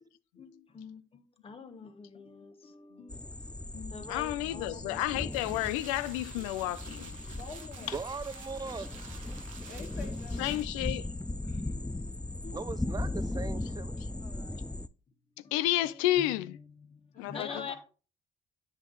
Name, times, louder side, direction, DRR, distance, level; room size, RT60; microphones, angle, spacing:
voice 1, 0.3-5.8 7.8-8.0 8.9-9.0 9.7-9.8 10.0-10.2 11.6-12.7 15.4-17.8, left 5 dB, 35° left, 1.2 m, -47 dB
sound 1, 3.1-14.9, left 2 dB, 5° left, 0.4 m, -38 dB
voice 2, 4.1-7.2 10.4-11.1 15.5-16.6 17.2-17.5, left 15 dB, 80° left, 0.4 m, -31 dB
sound 2, 5.3-10.7, right 8 dB, 90° right, 0.8 m, -52 dB
voice 3, 7.3-8.1 9.7-10.6 13.9-14.6 17.1-17.8, left 5 dB, 55° left, 2.1 m, -47 dB
voice 4, 7.9-8.9 12.5-13.9, right 4 dB, 25° right, 0.7 m, -39 dB
8.0 x 5.9 x 3.9 m
hypercardioid pair, 60°, 17 cm